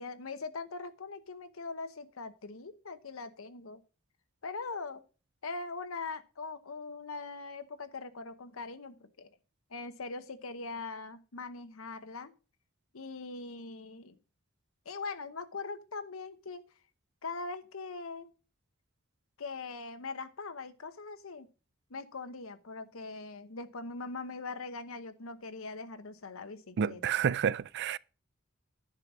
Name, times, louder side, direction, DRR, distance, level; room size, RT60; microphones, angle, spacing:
voice 1, 0.0-3.8 4.4-5.0 5.4-9.3 9.7-12.3 12.9-14.2 14.8-16.6 17.2-18.3 19.4-21.5 21.9-27.2, left 4 dB, 85° left, 0.9 m, -41 dB
voice 2, 26.8-28.0, right 7 dB, 55° right, 0.4 m, -29 dB
10.5 x 5.8 x 6.1 m
head